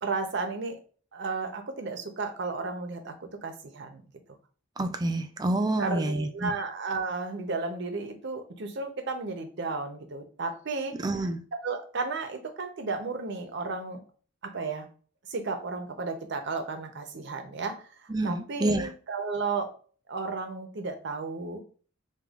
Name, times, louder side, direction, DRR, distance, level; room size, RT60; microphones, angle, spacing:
voice 1, 0.0-0.8 1.1-4.0 5.8-10.9 11.6-14.0 14.4-14.9 15.3-17.7 18.2-19.7 20.1-21.6, right 4 dB, 60° right, 0.6 m, -33 dB
voice 2, 4.8-6.5 11.0-11.4 18.1-18.9, right 1 dB, 20° right, 0.3 m, -28 dB
4.9 x 2.3 x 2.3 m
head